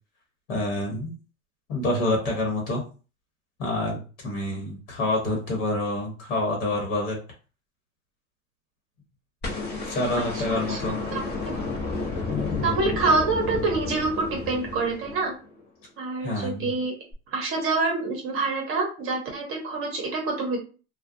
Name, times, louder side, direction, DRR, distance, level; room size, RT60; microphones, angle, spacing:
voice 1, 0.5-1.1 1.7-2.8 3.6-7.2 9.9-11.0 12.3-12.7 16.2-16.7, left 2 dB, 65° left, 0 dB, 1.1 m, -27 dB
sound 1, 9.4-15.6 17.1-17.2, left 3 dB, 25° left, 0.8 m, -31 dB
voice 2, 10.2-11.5 12.6-15.3 16.0-16.9 17.3-20.6, right 3 dB, 30° right, 0 dB, 0.7 m, -27 dB
2.2 x 2.2 x 2.6 m, 0.36 s
hypercardioid pair, 105°, 41 cm